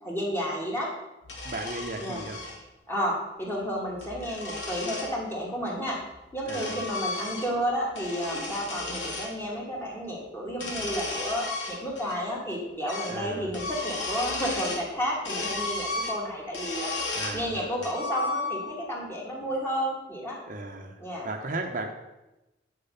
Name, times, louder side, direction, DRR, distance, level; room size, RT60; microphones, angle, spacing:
voice 1, 0.0-0.9 2.0-2.2 2.9-6.0 6.3-16.9 17.3-20.4 21.0-21.3, equal, 10° left, -3 dB, 2.7 m, -31 dB
sound 1, 1.2-2.6 3.8-5.1 6.0-7.6 7.9-9.3 10.5-12.2 12.4-12.5 12.9-13.2 13.5-14.9 15.2-17.4 17.8-18.8, left 2 dB, 80° left, 2.5 m, -34 dB
voice 2, 1.4-2.4 6.5-6.8 13.1-13.5 17.1-17.7 20.5-21.0 21.2-21.9, right 2 dB, 45° right, 3 dB, 1.0 m, -35 dB
10.0 x 6.6 x 5.8 m, 0.99 s
head